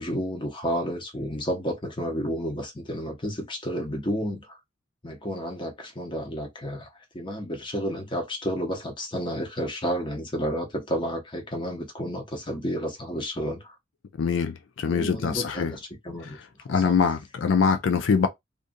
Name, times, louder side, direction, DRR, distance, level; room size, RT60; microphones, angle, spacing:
voice 1, 0.0-4.6 5.0-6.9 7.1-13.7 14.9-16.4 16.7-17.0, equal, 25° left, 0.9 m, -31 dB
voice 2, 14.2-15.7 16.7-18.3, left 5 dB, 80° left, 0.4 m, -23 dB
2.5 x 2.5 x 2.6 m
head